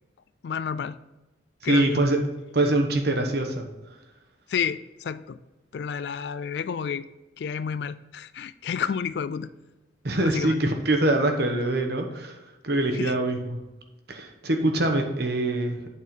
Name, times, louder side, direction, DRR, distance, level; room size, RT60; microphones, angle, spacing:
voice 1, 0.4-1.0 1.6-2.0 4.5-5.4 5.7-7.0 7.4-9.5 10.2-10.7 12.9-13.1, left 7 dB, 55° left, 15 dB, 0.3 m, -30 dB
voice 2, 1.6-2.2 2.5-3.7 10.0-12.4 12.6-13.6 14.1-15.9, right 2 dB, 55° right, 4 dB, 1.0 m, -24 dB
8.4 x 4.4 x 5.2 m, 1.0 s
head